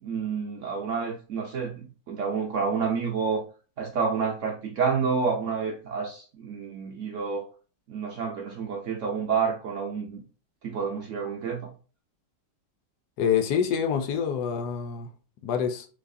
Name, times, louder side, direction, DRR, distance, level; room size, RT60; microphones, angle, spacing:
voice 1, 0.0-3.4 3.8-7.5 7.9-10.2 10.6-11.7, right 5 dB, 75° right, 0.7 m, -29 dB
voice 2, 13.2-15.1 15.4-15.9, left 7 dB, 75° left, 1.0 m, -26 dB
3.9 x 2.7 x 2.5 m
omnidirectional pair, 1.9 m